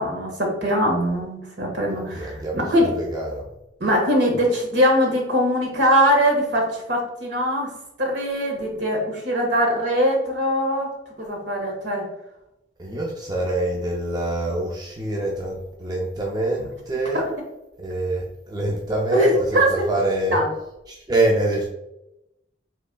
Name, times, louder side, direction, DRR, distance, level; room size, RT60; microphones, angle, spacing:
voice 1, 0.0-2.9 3.8-7.7 8.0-10.9 11.2-12.0 17.1-17.3 19.1-19.8 20.3-20.5, equal, 70° right, 0 dB, 1.5 m, -21 dB
voice 2, 2.1-3.5 12.8-17.2 17.8-20.4 20.9-21.7, right 1 dB, 20° right, -1 dB, 0.5 m, -25 dB
5.2 x 3.5 x 2.2 m, 0.88 s
head